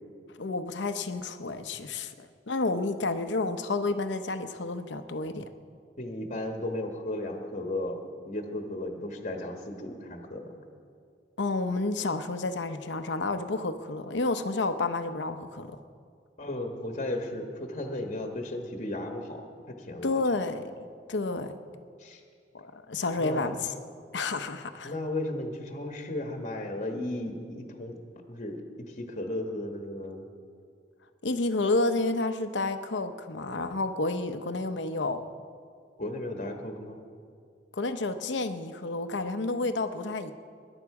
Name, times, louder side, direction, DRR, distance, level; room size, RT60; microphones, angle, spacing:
voice 1, 0.4-5.5 11.4-15.8 20.0-20.6 21.1-21.5 22.5-23.7 24.1-24.9 31.2-35.3 37.7-40.3, left 3 dB, 75° left, 9 dB, 0.8 m, -30 dB
voice 2, 6.0-8.0 8.3-10.5 16.4-20.2 22.0-22.2 23.2-23.5 24.8-28.0 28.3-30.2 36.0-37.0, left 1 dB, 40° left, 3 dB, 1.3 m, -35 dB
20.5 x 11.0 x 4.8 m, 2.2 s
head